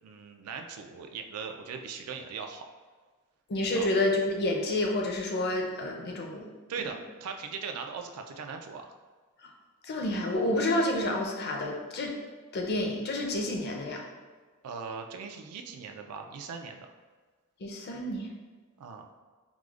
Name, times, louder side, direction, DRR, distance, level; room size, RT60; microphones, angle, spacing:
voice 1, 0.0-2.6 3.7-3.9 6.7-8.9 14.6-16.9 18.8-19.1, right 5 dB, 80° right, 4 dB, 0.3 m, -39 dB
voice 2, 3.5-6.4 6.8-6.9 9.8-12.1 12.5-14.0 17.6-18.3, left 1 dB, 50° left, 1 dB, 0.5 m, -29 dB
4.8 x 2.0 x 2.4 m, 1.4 s
head